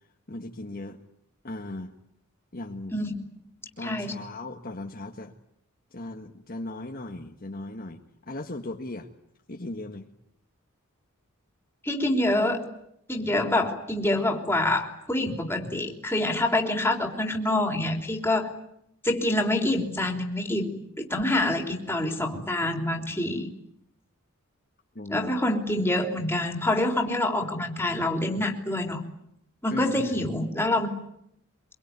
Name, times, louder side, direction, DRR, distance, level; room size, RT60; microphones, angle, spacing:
voice 1, 0.3-1.0 1.4-1.9 2.5-3.0 3.8-5.3 5.9-9.1 9.5-10.1 24.9-25.4 29.7-30.3, left 1 dB, 40° left, 3 dB, 1.6 m, -37 dB
voice 2, 3.8-4.1 11.8-12.7 13.1-18.5 19.0-23.5 25.1-29.0 29.6-30.9, left 1 dB, 10° left, 3 dB, 3.5 m, -26 dB
25.0 x 23.5 x 9.6 m, 0.76 s
head